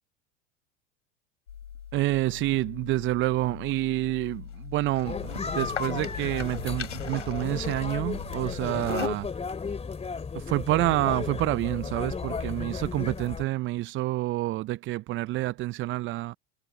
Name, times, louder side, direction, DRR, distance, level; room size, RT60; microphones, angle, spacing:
sound 1, 1.5-9.1, left 8 dB, 80° left, 4.1 m, -40 dB
voice 1, 1.9-9.3 10.3-16.3, right 17 dB, 35° right, 0.6 m, -28 dB
sound 2, 5.0-13.4, left 5 dB, 15° left, 2.7 m, -34 dB
figure-of-eight pair, 80°, 36 cm